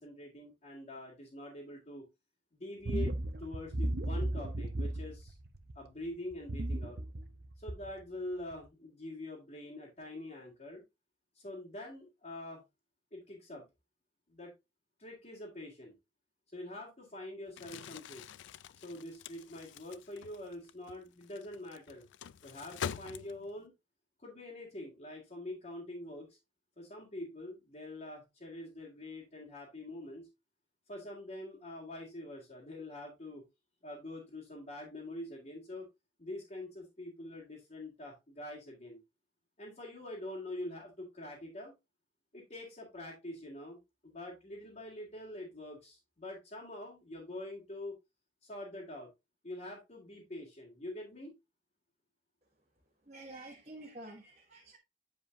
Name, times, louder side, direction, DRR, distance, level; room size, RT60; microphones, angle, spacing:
voice 1, 0.0-2.0 2.5-3.1 3.4-5.4 5.8-7.0 7.6-10.8 11.3-12.6 13.1-13.6 14.3-14.5 15.0-15.9 16.5-18.2 18.8-22.1 22.4-23.7 24.2-26.4 26.8-30.3 30.9-33.4 33.8-35.8 36.2-39.0 39.6-41.7 42.3-47.9 48.4-49.1 49.4-51.3, left 1 dB, 35° left, -5 dB, 2.1 m, -45 dB
sound 1, 2.8-5.9 6.3-8.0 8.5-8.6, right 1 dB, 55° right, 0.7 m, -35 dB
Crumpling crinkling, 17.5-23.7, left 8 dB, 70° left, 0.3 m, -45 dB
voice 2, 52.4-54.8, right 2 dB, 35° right, -2 dB, 1.3 m, -50 dB
9.2 x 5.0 x 2.6 m, 0.23 s
head